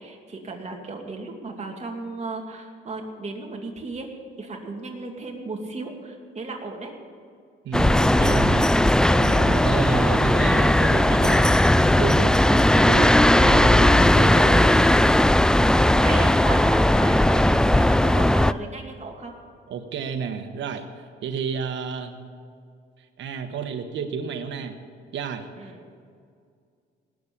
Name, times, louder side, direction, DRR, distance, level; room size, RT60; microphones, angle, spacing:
voice 1, 0.0-4.1 4.4-6.9 12.5-12.7 13.5-13.6 15.8-19.3 25.6-25.8, right 3 dB, 35° right, 2 dB, 2.6 m, -35 dB
voice 2, 7.6-8.8 9.1-14.8 19.7-20.9 21.2-22.1 23.2-24.8 25.1-25.5, right 6 dB, 70° right, 5 dB, 1.3 m, -31 dB
sound 1, 7.7-18.5, left 1 dB, 5° left, 0.3 m, -18 dB
18.5 x 7.5 x 8.6 m, 2.3 s
cardioid pair, 90°, 20 cm